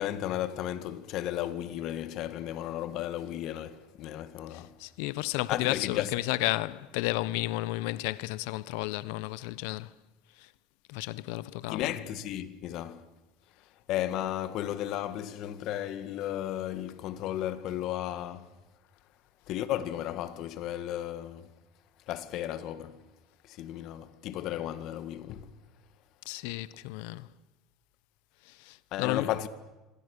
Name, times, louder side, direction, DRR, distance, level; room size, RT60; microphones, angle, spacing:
voice 1, 0.0-4.8 5.5-6.1 11.7-13.1 13.9-18.5 19.5-21.5 22.1-23.1 23.4-25.6 28.9-29.5, left 12 dB, 60° left, 2.0 m, -34 dB
voice 2, 4.5-9.9 10.4-10.5 10.9-11.9 26.2-27.3 28.4-29.3, left 18 dB, 80° left, 1.0 m, -33 dB
28.0 x 25.5 x 6.8 m
cardioid pair, 130°, 0 cm